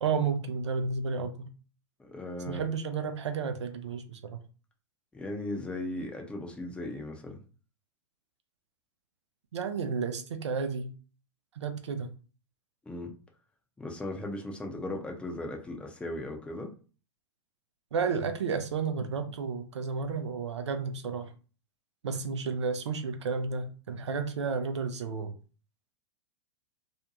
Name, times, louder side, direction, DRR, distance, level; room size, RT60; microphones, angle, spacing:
voice 1, 0.0-1.5 2.5-4.4 9.5-10.9 11.5-12.1 17.9-21.3 22.0-25.3, right 5 dB, 70° right, 0.6 m, -32 dB
voice 2, 2.0-2.7 5.1-7.4 12.9-13.1 13.8-16.7, left 1 dB, 5° left, 0.6 m, -37 dB
2.6 x 2.2 x 2.8 m
figure-of-eight pair, 100°, 15 cm